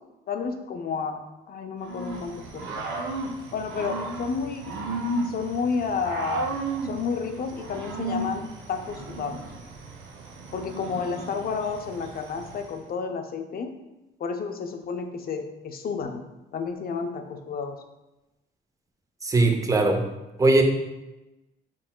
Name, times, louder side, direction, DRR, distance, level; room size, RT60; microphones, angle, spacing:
voice 1, 0.3-1.2 1.5-2.9 3.5-4.7 5.2-6.5 6.8-9.4 10.5-13.7 14.2-16.2 16.5-17.8, left 5 dB, 50° left, 5 dB, 0.5 m, -31 dB
Growling / Cricket, 1.8-12.8, right 2 dB, 75° right, 0.6 m, -34 dB
voice 2, 19.2-20.1 20.4-20.6, right 2 dB, 15° right, 4 dB, 0.5 m, -20 dB
4.0 x 3.7 x 2.2 m, 1.0 s
cardioid pair, 90°, 20 cm